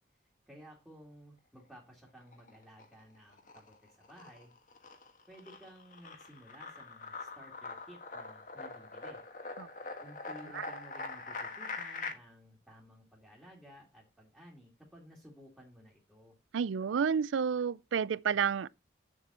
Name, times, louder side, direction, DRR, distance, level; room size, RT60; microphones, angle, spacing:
voice 1, 0.2-4.5 5.3-9.2 10.0-16.4, equal, 5° right, 2.3 m, -55 dB
sound 1, 2.2-3.0 3.3-12.1, left 3 dB, 45° left, 1.5 m, -43 dB
voice 2, 16.5-18.7, right 7 dB, 85° right, 0.4 m, -30 dB
8.6 x 7.3 x 4.2 m
head